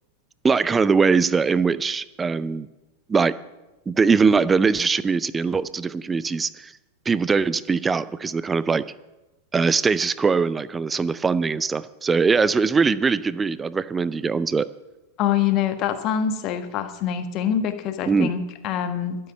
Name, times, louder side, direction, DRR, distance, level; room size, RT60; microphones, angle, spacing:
voice 1, 0.4-2.7 3.1-3.3 3.9-6.7 7.1-8.8 9.5-14.7 18.1-18.3, right 5 dB, 15° right, 17 dB, 0.5 m, -21 dB
voice 2, 15.2-19.2, left 9 dB, 40° left, 8 dB, 1.3 m, -25 dB
12.5 x 7.8 x 9.0 m, 1.0 s
figure-of-eight pair, 90°, 0 cm